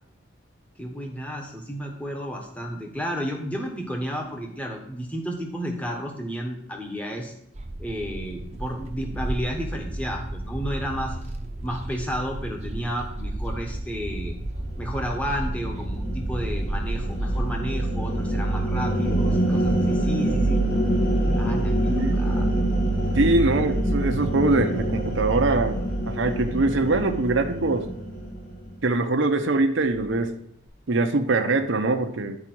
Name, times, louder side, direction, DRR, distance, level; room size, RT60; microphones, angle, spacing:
voice 1, 0.8-7.3 7.8-11.2 11.6-14.3 14.8-20.6 21.3-22.8 23.4-23.7, equal, 5° left, 1 dB, 1.1 m, -32 dB
sound 1, 7.5-17.6, right 1 dB, 35° right, 0.7 m, -33 dB
sound 2, 14.3-28.8, right 1 dB, 45° left, 2.1 m, -25 dB
voice 2, 21.9-22.3 23.1-25.8 26.1-27.9 28.8-30.3 30.9-32.4, right 2 dB, 75° right, 5 dB, 0.7 m, -23 dB
9.8 x 4.8 x 4.5 m, 0.75 s
head